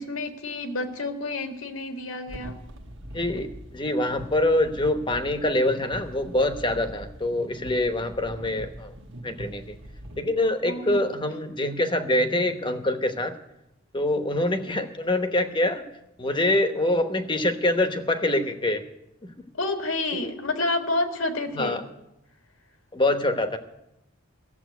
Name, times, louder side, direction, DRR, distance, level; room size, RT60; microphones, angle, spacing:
voice 1, 0.0-2.6 10.6-11.2 19.5-21.8, left 2 dB, 80° left, 6 dB, 1.7 m, -29 dB
sound 1, 2.3-10.2, right 1 dB, 60° right, 1.3 m, -42 dB
voice 2, 3.1-8.9 9.2-9.8 10.2-13.3 13.9-15.8 16.2-18.8 19.2-19.5 20.2-20.3 21.5-21.8 22.9-23.6, left 1 dB, 25° left, 8 dB, 1.0 m, -25 dB
14.5 x 7.5 x 9.2 m, 0.86 s
head